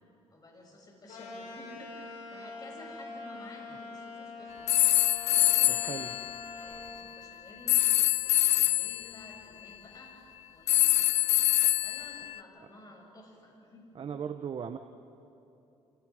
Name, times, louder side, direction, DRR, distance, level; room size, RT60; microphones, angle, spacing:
voice 1, 0.3-6.0 6.6-11.2 11.6-13.9, left 2 dB, 35° left, 0 dB, 7.1 m, -52 dB
sound 1, 1.1-6.9, left 3 dB, 90° left, 6.3 m, -44 dB
sound 2, 4.7-6.9 7.7-9.1 10.7-12.4, left 14 dB, 70° left, 0.6 m, -25 dB
voice 2, 5.7-6.1 13.9-14.8, right 7 dB, 50° right, 8 dB, 1.0 m, -37 dB
29.0 x 26.5 x 5.0 m, 2.7 s
cardioid pair, 100°, 12 cm